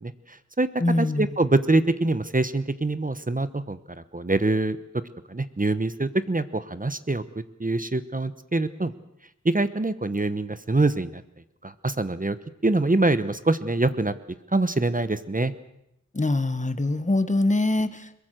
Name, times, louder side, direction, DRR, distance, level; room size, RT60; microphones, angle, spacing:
voice 1, 0.0-0.7 1.0-3.8 4.1-4.8 5.3-7.2 7.6-8.9 9.4-11.2 11.6-12.4 12.6-14.1 14.5-15.5, right 2 dB, 25° right, 13 dB, 1.0 m, -24 dB
voice 2, 0.8-1.3 16.1-18.2, left 2 dB, 25° left, 11 dB, 1.3 m, -24 dB
22.5 x 21.5 x 6.5 m, 0.80 s
wide cardioid pair, 60°, 30 cm